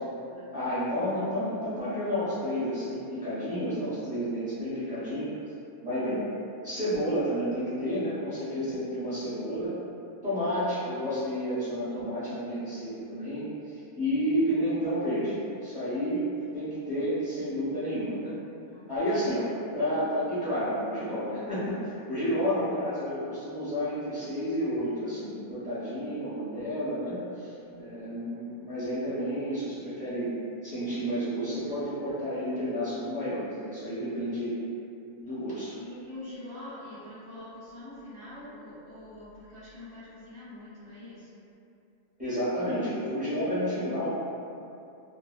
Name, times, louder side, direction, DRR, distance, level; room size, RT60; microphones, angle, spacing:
voice 1, 0.0-0.8 16.1-16.2 18.7-19.1 27.5-27.9 35.2-41.4, left 1 dB, 35° left, -16 dB, 0.4 m, -46 dB
voice 2, 0.5-5.3 5.8-6.2 6.6-9.7 10.2-16.3 16.5-18.3 18.9-19.5 19.7-30.3 30.6-34.6 35.2-35.8 42.2-44.1, equal, 5° right, -15 dB, 0.9 m, -31 dB
2.5 x 2.2 x 2.3 m, 2.7 s
omnidirectional pair, 1.5 m